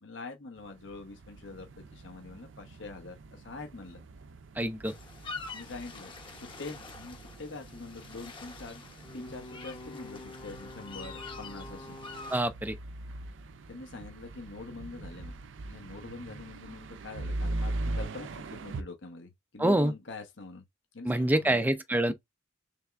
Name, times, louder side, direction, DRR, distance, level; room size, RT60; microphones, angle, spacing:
voice 1, 0.0-1.7 1.9-4.0 5.5-8.8 9.1-12.0 13.7-20.6 20.9-21.7, left 3 dB, 65° left, 0.9 m, -44 dB
sound 1, 0.6-18.8, right 2 dB, 65° right, 0.5 m, -41 dB
voice 2, 4.6-4.9 12.3-12.8 19.6-19.9 21.1-22.1, right 1 dB, 10° right, 0.4 m, -26 dB
sound 2, 4.9-12.4, left 3 dB, 25° left, 0.8 m, -45 dB
3.5 x 3.4 x 3.3 m
head